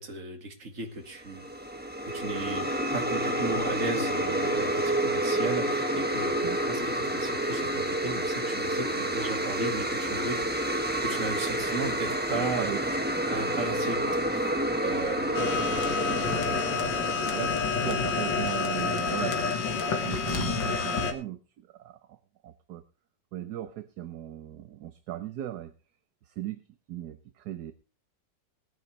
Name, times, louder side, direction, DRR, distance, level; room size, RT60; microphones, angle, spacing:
voice 1, 0.0-1.5 2.1-10.5 11.0-12.7 13.3-14.5 14.8-15.6, right 3 dB, 45° right, 4 dB, 2.2 m, -35 dB
sound 1, 1.2-17.7, right 1 dB, 5° right, 1.0 m, -29 dB
voice 2, 12.3-12.8 17.3-19.7 20.0-22.2 22.4-22.8 23.3-25.7 26.3-26.6 26.9-27.7, right 13 dB, 65° right, 10 dB, 1.2 m, -38 dB
sound 2, 15.3-21.1, left 4 dB, 80° left, 2.2 m, -28 dB
20.0 x 9.5 x 3.2 m, 0.34 s
omnidirectional pair, 2.0 m